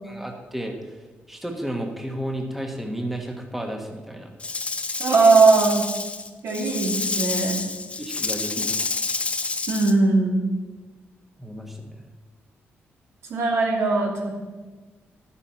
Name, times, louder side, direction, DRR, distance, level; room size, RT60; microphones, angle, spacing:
voice 1, 0.1-0.8 1.3-4.3 8.0-8.7 11.4-12.0, right 1 dB, 5° right, 2 dB, 1.4 m, -32 dB
Rattle / Rattle (instrument), 4.4-9.9, left 3 dB, 25° left, 0.9 m, -28 dB
voice 2, 5.0-5.8 6.4-7.6 8.5-8.7 9.7-10.4 13.3-14.3, right 3 dB, 80° right, 0 dB, 2.6 m, -19 dB
12.0 x 10.0 x 5.7 m, 1.3 s
cardioid pair, 120°, 4 cm